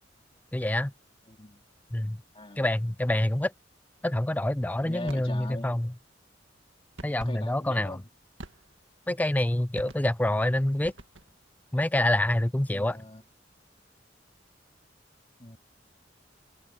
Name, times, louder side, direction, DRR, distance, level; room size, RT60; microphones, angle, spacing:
voice 1, 0.5-0.9 1.9-2.2 2.6-3.5 4.0-5.9 7.0-8.0 9.1-10.9 11.7-13.0, left 1 dB, 10° left, 0.4 m, -26 dB
voice 2, 1.3-1.6 2.3-2.7 4.8-5.8 7.2-8.1 12.7-13.2 15.4-15.6, left 2 dB, 30° left, 2.9 m, -42 dB
sound 1, 5.1-5.4 7.0-7.4 8.4-8.9 9.8-10.2 10.8-11.4, right 2 dB, 90° right, 1.9 m, -46 dB
head